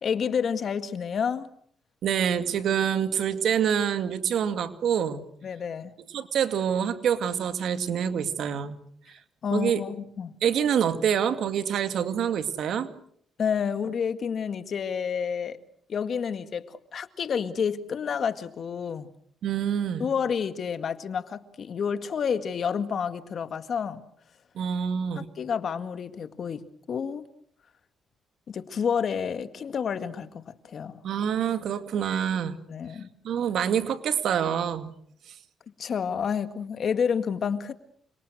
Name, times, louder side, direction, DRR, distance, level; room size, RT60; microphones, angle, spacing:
voice 1, 0.0-1.5 5.4-5.9 9.4-10.3 13.4-15.6 15.9-19.1 20.0-24.0 25.2-27.2 28.5-31.0 32.7-33.1 35.8-37.7, left 7 dB, 55° left, 2.0 m, -29 dB
voice 2, 2.0-5.2 6.1-8.8 9.1-9.2 9.5-9.8 10.4-12.9 19.4-20.1 24.6-25.3 31.0-32.6 33.2-34.9, right 8 dB, 70° right, 2.3 m, -26 dB
28.5 x 26.0 x 6.4 m
cardioid pair, 90°, 0 cm